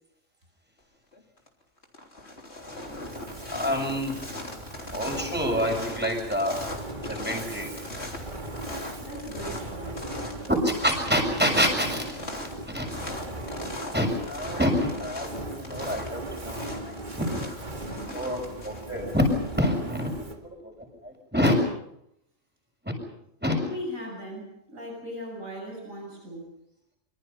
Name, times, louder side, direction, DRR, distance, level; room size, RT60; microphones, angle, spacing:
sound 1, 1.1-1.5 1.8-19.7, left 2 dB, 55° left, 3.7 m, -40 dB
Fire, 2.6-20.5, right 1 dB, 35° right, 2.2 m, -39 dB
voice 1, 3.5-4.2 4.9-6.6 7.1-7.7 10.5-12.9 13.9-17.4 17.9-19.3 19.6-21.6 22.8-22.9 23.4-23.6, equal, 5° right, 3 dB, 6.8 m, -27 dB
voice 2, 9.0-10.2 12.4-12.5 17.8-18.3 23.6-26.5, equal, 80° right, 1 dB, 8.4 m, -39 dB
26.0 x 25.0 x 5.8 m, 0.78 s
omnidirectional pair, 1.4 m